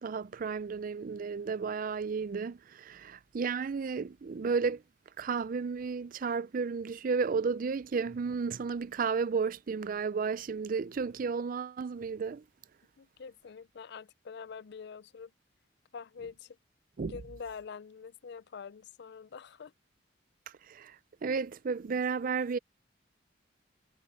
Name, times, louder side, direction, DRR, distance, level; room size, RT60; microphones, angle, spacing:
voice 1, 0.0-4.8 5.2-12.4 17.0-17.2 20.7-21.0 21.2-22.6, right 5 dB, 45° right, 0.4 m, -33 dB
voice 2, 13.0-15.3 15.9-16.6 17.1-19.7, left 6 dB, 65° left, 0.5 m, -45 dB
head